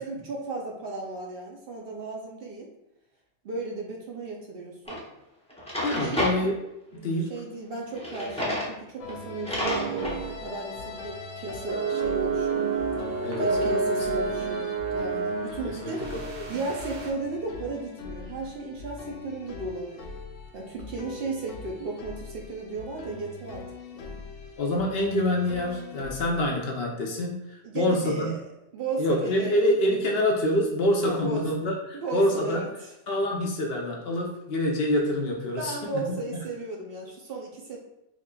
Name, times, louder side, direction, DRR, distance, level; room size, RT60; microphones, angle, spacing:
voice 1, 0.0-2.7 3.4-5.0 5.9-6.2 6.9-7.0 7.3-12.7 13.4-16.1 16.5-20.1 20.5-23.6 23.9-24.2 27.6-28.5 28.7-29.6 31.0-31.6 31.9-32.9 35.6-37.8, right 3 dB, 60° right, -1 dB, 0.7 m, -35 dB
Drawer open or close, 4.9-5.0 5.5-6.4 7.9-8.7 9.1-9.2 9.4-10.2, left 1 dB, 5° left, 0.6 m, -30 dB
voice 2, 5.8-6.5 7.0-7.3 13.2-13.8 15.8-15.9 16.4-16.6 24.6-27.4 27.7-28.3 29.0-32.6 33.1-36.0, left 1 dB, 60° left, 0 dB, 0.8 m, -26 dB
sound 1, 9.0-26.6, left 4 dB, 85° left, 1.0 m, -41 dB
sound 2, 9.6-10.4 10.7-10.9 11.7-17.1, right 5 dB, 85° right, 1.1 m, -29 dB
4.8 x 2.8 x 2.2 m, 0.85 s
omnidirectional pair, 1.2 m